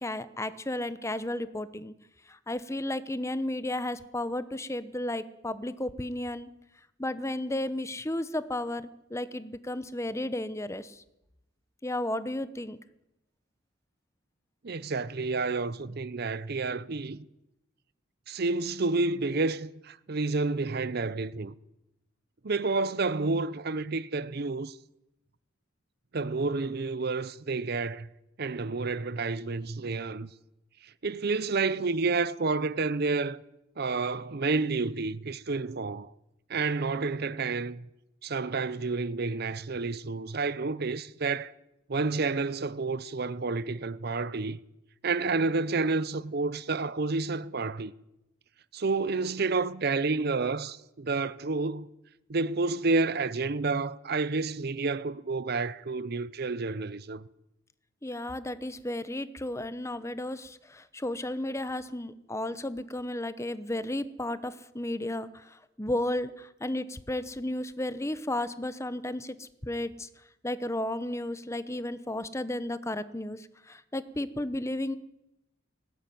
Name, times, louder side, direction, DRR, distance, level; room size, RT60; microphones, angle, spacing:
voice 1, 0.0-1.9 2.3-6.5 7.0-11.0 11.8-12.8 58.0-65.3 65.8-70.1 70.4-75.0, left 1 dB, 15° left, 0.9 m, -33 dB
voice 2, 14.6-17.2 18.3-21.5 22.4-24.8 26.1-28.1 28.4-30.3 31.0-33.4 33.8-36.1 36.5-37.9 38.2-41.5 41.9-44.6 45.0-47.9 48.7-51.9 52.3-57.2, right 3 dB, 55° right, 0.7 m, -30 dB
19.5 x 17.0 x 9.3 m
head